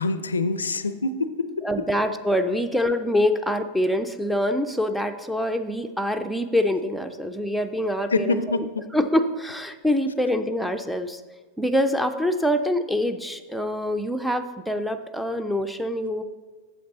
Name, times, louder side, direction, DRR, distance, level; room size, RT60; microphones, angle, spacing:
voice 1, 0.0-1.7 8.1-8.9, left 3 dB, 75° left, 13 dB, 0.4 m, -25 dB
voice 2, 1.6-8.6 8.9-11.2 11.6-16.2, left 1 dB, ahead, 5 dB, 0.5 m, -25 dB
8.5 x 7.3 x 3.9 m, 1.4 s
figure-of-eight pair, 90°, 0 cm